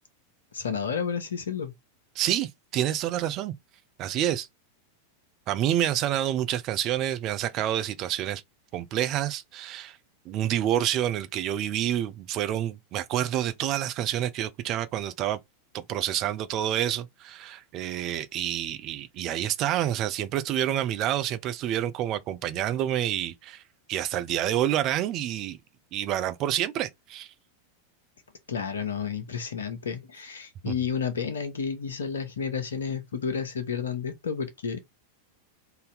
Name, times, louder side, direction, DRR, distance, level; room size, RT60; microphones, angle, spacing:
voice 1, 0.5-1.7 28.5-34.8, left 6 dB, 70° left, 0.9 m, -31 dB
voice 2, 2.2-3.5 4.0-4.5 5.5-8.4 8.7-10.0 10.3-15.4 15.7-23.6 23.9-25.6 25.9-27.3 30.7-30.8, right 11 dB, 35° right, 0.5 m, -28 dB
3.9 x 2.7 x 3.9 m
figure-of-eight pair, 90°, 0 cm